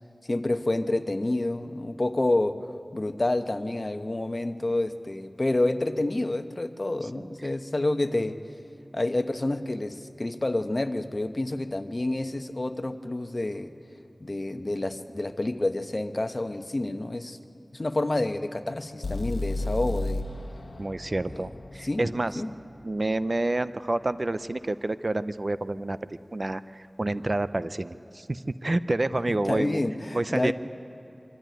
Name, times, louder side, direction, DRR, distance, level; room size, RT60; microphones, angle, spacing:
voice 1, 0.3-8.4 8.9-13.7 14.2-17.4 17.7-20.2 21.3-21.4 21.8-22.5 29.4-30.5, left 2 dB, 45° left, 8 dB, 1.0 m, -28 dB
sound 1, 19.0-23.0, left 2 dB, 90° left, 1.0 m, -33 dB
voice 2, 20.8-22.4 22.8-29.8 30.1-30.5, right 2 dB, 50° right, 13 dB, 0.5 m, -29 dB
24.5 x 13.5 x 9.1 m, 2.7 s
wide cardioid pair, 45°, 0 cm